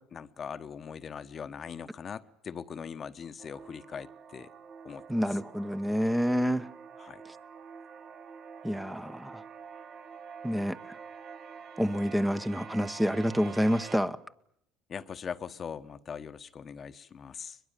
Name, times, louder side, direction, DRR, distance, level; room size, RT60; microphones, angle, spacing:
voice 1, 0.1-4.5 4.8-5.2 7.0-7.2 14.9-17.6, left 7 dB, 40° left, 1.2 m, -41 dB
sound 1, 3.4-14.0, right 6 dB, 45° right, 1.5 m, -47 dB
voice 2, 5.1-6.7 8.6-9.4 10.4-11.0 11.8-14.2, equal, 5° right, 1.0 m, -28 dB
22.0 x 22.0 x 9.1 m
hypercardioid pair, 75°, 0 cm